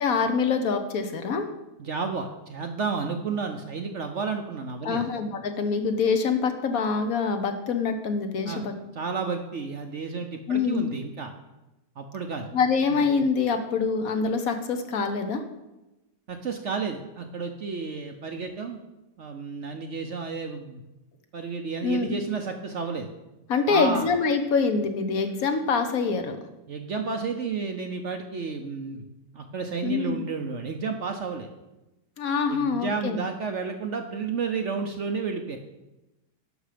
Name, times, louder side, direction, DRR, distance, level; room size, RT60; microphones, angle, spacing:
voice 1, 0.0-1.4 4.8-8.7 10.5-10.9 12.5-15.4 21.8-22.1 23.5-26.4 29.8-30.2 32.2-33.2, left 5 dB, 60° left, 7 dB, 1.2 m, -25 dB
voice 2, 1.8-5.0 8.5-8.6 8.9-11.3 12.0-12.5 12.9-13.0 16.3-18.8 19.2-20.8 21.3-23.1 23.7-24.1 26.7-29.0 29.3-31.5 32.5-35.6, right 4 dB, 55° right, 5 dB, 0.9 m, -31 dB
11.0 x 6.4 x 5.0 m, 0.99 s
omnidirectional pair, 1.8 m